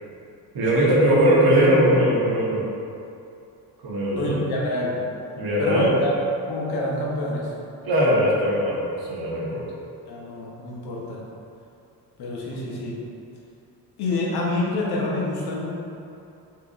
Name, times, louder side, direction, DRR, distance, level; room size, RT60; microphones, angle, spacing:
voice 1, 0.5-2.6 3.8-4.4 5.4-5.9 7.9-9.6, equal, 65° right, -5 dB, 1.1 m, -20 dB
voice 2, 4.2-5.0 5.6-6.1 6.5-7.5 10.1-11.2 12.2-13.0 14.0-15.7, left 2 dB, 80° left, -3 dB, 0.9 m, -27 dB
5.6 x 2.8 x 2.5 m, 2.6 s
cardioid pair, 135°, 38 cm